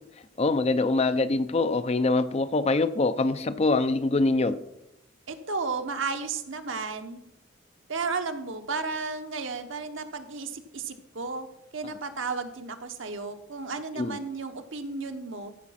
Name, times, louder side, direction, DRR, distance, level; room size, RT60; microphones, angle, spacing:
voice 1, 0.4-4.6 14.0-14.2, left 3 dB, 30° left, 12 dB, 0.5 m, -24 dB
voice 2, 5.3-7.2 7.9-11.5 11.7-15.5, right 4 dB, 65° right, 7 dB, 1.0 m, -33 dB
14.5 x 5.0 x 5.7 m, 0.85 s
head